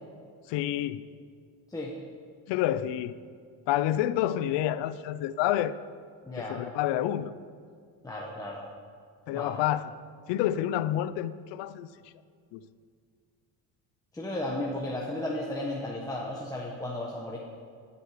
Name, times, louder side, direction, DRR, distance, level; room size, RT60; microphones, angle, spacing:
voice 1, 0.5-1.0 2.5-3.2 3.7-5.7 6.4-7.3 9.3-9.9 10.3-11.9 12.5-12.6, left 12 dB, 80° left, 15 dB, 0.7 m, -28 dB
voice 2, 6.3-6.6 8.0-8.7 9.3-9.6 14.1-17.4, left 1 dB, 10° left, -3 dB, 1.1 m, -34 dB
16.0 x 10.0 x 5.0 m, 2.2 s
cardioid pair, 160°, 42 cm